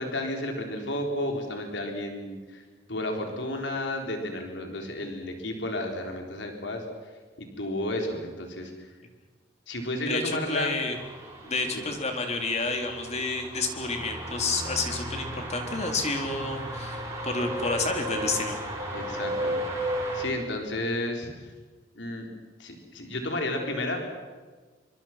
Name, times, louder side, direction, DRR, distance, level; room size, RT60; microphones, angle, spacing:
voice 1, 0.0-9.0 9.7-10.7 11.4-11.8 18.9-21.5 21.9-22.3 22.6-24.2, left 1 dB, 85° left, 3 dB, 4.0 m, -32 dB
voice 2, 10.5-11.0 11.5-18.6, left 3 dB, 40° left, 3 dB, 3.9 m, -30 dB
sound 1, 10.9-20.3, right 1 dB, 15° right, 6.4 m, -34 dB
27.5 x 24.0 x 6.0 m, 1.4 s
head